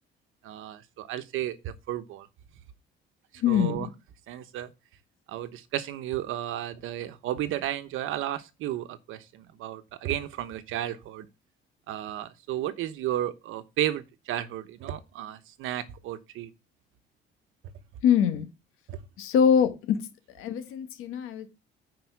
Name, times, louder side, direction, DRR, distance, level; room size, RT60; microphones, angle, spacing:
voice 1, 0.4-2.3 3.5-3.9 4.3-4.7 5.3-11.3 11.9-16.5 18.9-19.0, right 12 dB, 75° right, 1.1 m, -33 dB
voice 2, 3.4-3.9 18.0-18.5 19.2-20.0 20.4-21.5, left 8 dB, 85° left, 1.6 m, -23 dB
9.6 x 4.8 x 4.7 m
cardioid pair, 155°, 21 cm